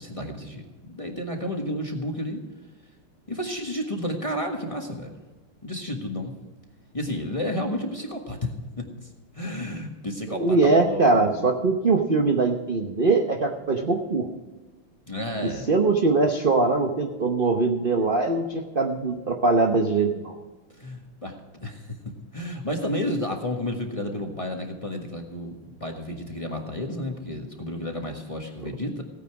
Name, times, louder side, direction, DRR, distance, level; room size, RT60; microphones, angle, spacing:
voice 1, 0.0-2.4 3.3-5.1 5.6-6.3 6.9-8.5 8.8-11.4 15.1-15.7 20.7-21.3 21.6-22.0 22.3-29.0, left 1 dB, 20° left, 2 dB, 1.2 m, -31 dB
voice 2, 10.3-14.3 15.7-20.3, right 3 dB, 50° right, 3 dB, 0.6 m, -22 dB
16.5 x 9.2 x 4.8 m, 1.2 s
omnidirectional pair, 2.4 m